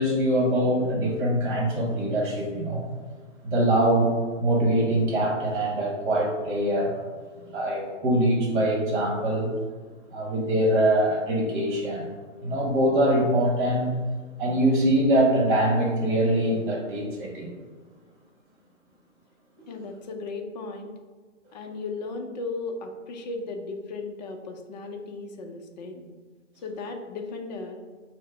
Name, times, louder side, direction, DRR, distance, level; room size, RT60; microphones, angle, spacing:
voice 1, 0.0-2.9 3.4-7.0 7.5-9.5 10.1-12.1 12.4-13.9 14.4-17.5, right 1 dB, 40° right, -1 dB, 1.3 m, -23 dB
voice 2, 19.7-20.9 21.5-26.1 26.6-27.8, left 3 dB, 35° left, 4 dB, 0.5 m, -36 dB
4.5 x 2.1 x 4.6 m, 1.5 s
hypercardioid pair, 140°, 38 cm